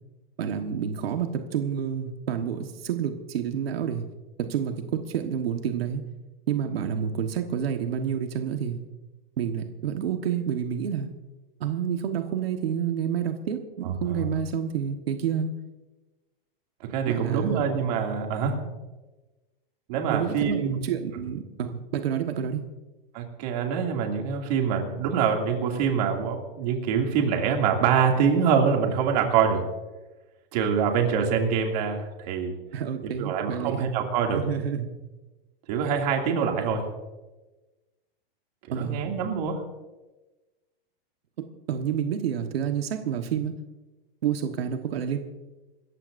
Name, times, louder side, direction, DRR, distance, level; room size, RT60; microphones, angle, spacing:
voice 1, 0.4-4.1 4.4-6.0 6.5-8.8 9.4-11.1 11.6-15.5 17.1-17.6 18.4-18.6 20.1-22.6 32.7-33.9 34.3-34.9 38.7-39.1 41.7-43.5 44.2-45.2, right 8 dB, 90° right, 5 dB, 1.4 m, -29 dB
voice 2, 13.8-14.3 16.9-18.5 19.9-20.8 23.1-29.6 30.5-32.5 33.0-34.4 35.7-36.8 38.7-39.6, right 6 dB, 45° right, 2 dB, 2.6 m, -25 dB
27.0 x 14.0 x 2.6 m, 1.2 s
supercardioid pair, 170°, 29 cm